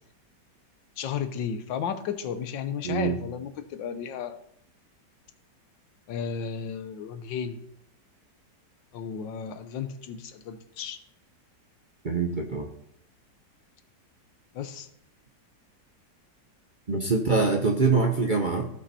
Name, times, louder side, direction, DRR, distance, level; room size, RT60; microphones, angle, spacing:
voice 1, 1.0-4.4 6.1-7.6 8.9-11.0 14.5-14.9, left 7 dB, 85° left, 10 dB, 1.6 m, -33 dB
voice 2, 2.8-3.2 12.0-12.7 16.9-18.7, right 4 dB, 40° right, 2 dB, 0.7 m, -24 dB
15.5 x 5.5 x 4.2 m, 0.71 s
omnidirectional pair, 1.9 m